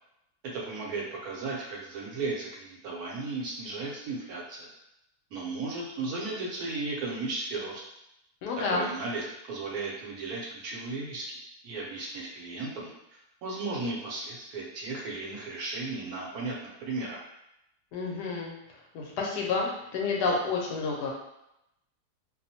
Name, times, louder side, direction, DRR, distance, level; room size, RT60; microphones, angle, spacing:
voice 1, 0.4-4.7 5.3-7.8 8.7-11.4 11.6-16.6 16.8-17.2, right 3 dB, 70° right, -3 dB, 1.1 m, -35 dB
voice 2, 8.4-8.9 17.9-18.5 18.9-21.1, left 4 dB, 90° left, -1 dB, 1.2 m, -29 dB
2.8 x 2.1 x 2.7 m, 0.84 s
omnidirectional pair, 1.7 m